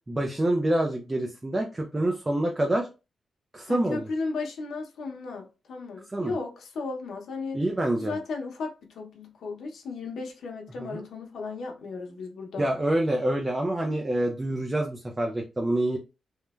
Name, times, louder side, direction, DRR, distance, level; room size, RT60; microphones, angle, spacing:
voice 1, 0.1-2.9 3.5-4.1 6.1-6.3 7.5-8.2 10.8-11.0 12.6-16.0, right 1 dB, 20° right, 0.4 m, -26 dB
voice 2, 3.7-7.6 8.0-12.7, left 4 dB, 80° left, 0.7 m, -35 dB
3.0 x 2.1 x 2.3 m
wide cardioid pair, 130°, 0 cm